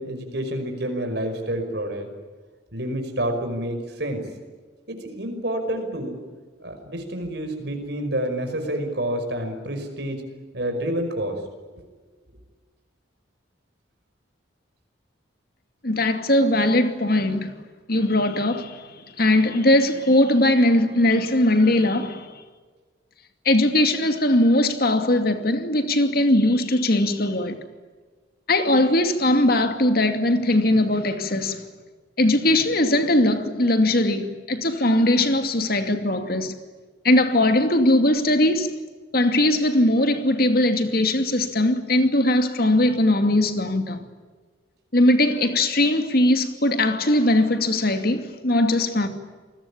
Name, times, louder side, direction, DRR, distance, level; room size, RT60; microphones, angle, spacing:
voice 1, 0.0-2.1 2.7-4.2 4.9-6.2 6.6-10.2 10.5-11.4 11.7-11.8, right 1 dB, 55° right, 5.6 m, -28 dB
voice 2, 15.8-17.5 17.9-22.3 23.4-27.6 28.5-31.7 32.2-36.6 37.0-38.8 39.1-44.0 44.9-49.1, left 1 dB, 50° left, 2.5 m, -20 dB
28.5 x 20.5 x 8.7 m
head